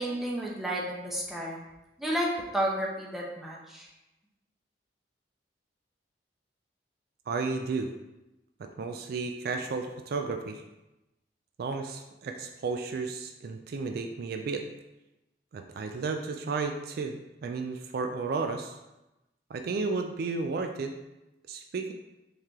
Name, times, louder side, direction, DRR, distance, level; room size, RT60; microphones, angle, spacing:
voice 1, 0.0-1.6 2.0-2.3 2.5-3.9, right 1 dB, ahead, -4 dB, 0.8 m, -31 dB
voice 2, 7.3-7.9 8.8-10.6 11.6-14.6 15.5-18.8 19.5-20.9 21.5-21.9, right 4 dB, 60° right, 5 dB, 0.3 m, -33 dB
4.5 x 3.2 x 3.6 m, 0.97 s
head